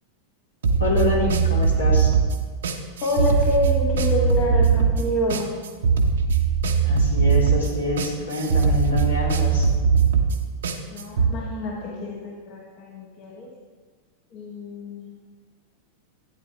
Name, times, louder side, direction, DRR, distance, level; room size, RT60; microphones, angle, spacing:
sound 1, 0.6-11.3, right 5 dB, 65° right, 1.0 m, -20 dB
voice 1, 0.8-2.1 6.8-9.7, left 2 dB, 80° left, -5 dB, 3.6 m, -26 dB
voice 2, 3.0-5.5 10.9-13.5 14.3-15.1, left 1 dB, 40° left, -1 dB, 1.6 m, -27 dB
14.5 x 9.3 x 3.5 m, 1.5 s
figure-of-eight pair, 90°, 0 cm